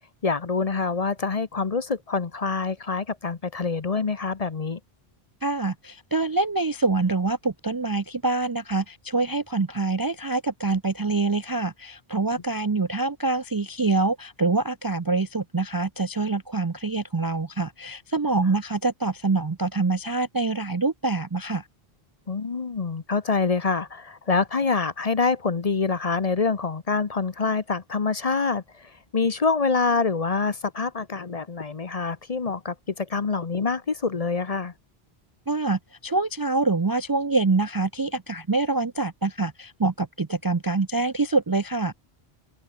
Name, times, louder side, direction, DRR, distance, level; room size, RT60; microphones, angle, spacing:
voice 1, 0.2-4.8 22.3-34.7, left 4 dB, 40° left, 0.9 m, -26 dB
voice 2, 5.4-21.7 35.5-41.9, right 3 dB, 30° right, 0.5 m, -25 dB
open air
omnidirectional pair, 1.0 m